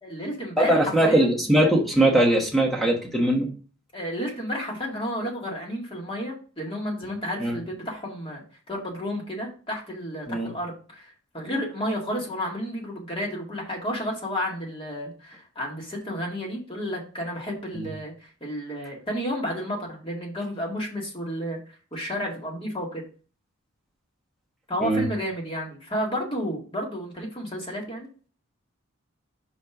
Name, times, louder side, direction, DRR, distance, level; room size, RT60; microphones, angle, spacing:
voice 1, 0.0-1.3 3.9-21.6 21.9-23.0 24.7-28.1, equal, 25° left, -1 dB, 2.0 m, -31 dB
voice 2, 0.6-3.5 7.4-7.6 10.3-10.5 17.7-17.9 24.8-25.1, right 1 dB, ahead, 0 dB, 1.3 m, -21 dB
5.3 x 4.3 x 5.9 m, 0.39 s
head